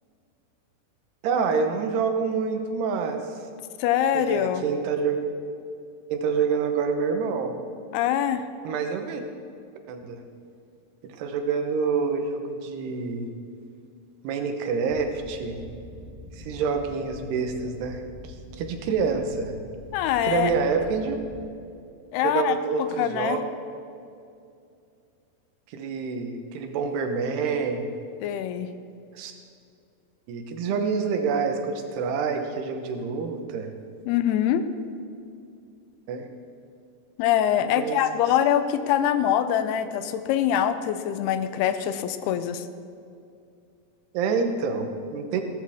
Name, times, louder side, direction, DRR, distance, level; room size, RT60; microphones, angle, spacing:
voice 1, 1.2-3.2 4.1-5.2 6.1-7.5 8.6-9.2 9.9-10.2 11.0-13.3 14.2-15.6 16.4-18.0 18.6-19.5 20.2-21.2 22.2-23.4 25.7-27.9 29.2-29.3 30.3-33.7 36.1-36.2 37.6-38.0 44.1-45.4, right 5 dB, 90° right, 5 dB, 3.1 m, -27 dB
voice 2, 3.8-4.6 7.9-8.4 19.9-20.5 22.1-23.4 28.2-28.7 34.1-34.7 37.2-42.7, left 10 dB, 85° left, 11 dB, 2.7 m, -24 dB
sound 1, 14.9-21.4, left 1 dB, 10° right, 1.1 m, -44 dB
16.5 x 13.0 x 3.6 m, 2.5 s
omnidirectional pair, 4.6 m